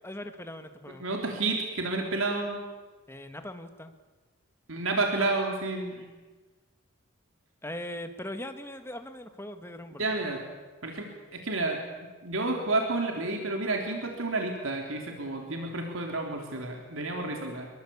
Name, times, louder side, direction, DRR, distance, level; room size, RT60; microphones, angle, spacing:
voice 1, 0.0-1.1 3.1-3.9 7.6-10.1, left 1 dB, 10° left, 7 dB, 1.7 m, -40 dB
voice 2, 1.0-2.7 4.7-6.0 10.0-10.4 10.8-17.7, right 2 dB, 70° right, 2 dB, 3.3 m, -30 dB
25.5 x 22.5 x 8.6 m, 1.3 s
head